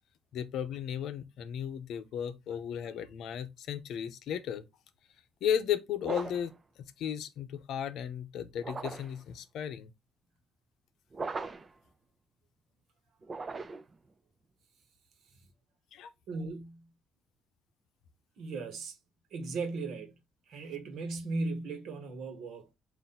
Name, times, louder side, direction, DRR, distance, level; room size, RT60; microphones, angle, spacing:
voice 1, 0.3-4.6 5.4-6.5 7.0-9.9 15.9-16.1, left 9 dB, 80° left, 0.6 m, -35 dB
sound 1, 6.0-6.6 8.6-9.2 11.1-11.8 13.2-14.0, right 4 dB, 35° right, 0.5 m, -39 dB
voice 2, 16.3-16.9 18.4-19.0 19.3-20.1 20.5-22.7, right 3 dB, 75° right, 1.1 m, -37 dB
3.8 x 2.5 x 4.1 m
cardioid pair, 90°, 0 cm